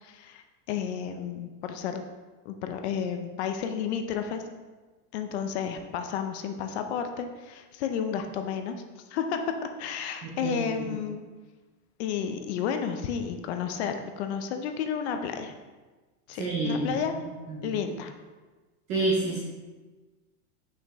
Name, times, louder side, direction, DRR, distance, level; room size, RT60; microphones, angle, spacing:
voice 1, 0.0-2.0 2.5-4.4 5.1-8.8 9.1-9.5 9.8-11.2 12.0-15.5 16.3-17.1 17.6-18.1, left 7 dB, 45° left, 7 dB, 0.5 m, -32 dB
voice 2, 10.2-10.9 16.4-16.8 17.2-17.7 18.9-19.4, right 2 dB, 15° right, -5 dB, 0.4 m, -29 dB
6.0 x 4.7 x 3.5 m, 1.3 s
supercardioid pair, 165°, 46 cm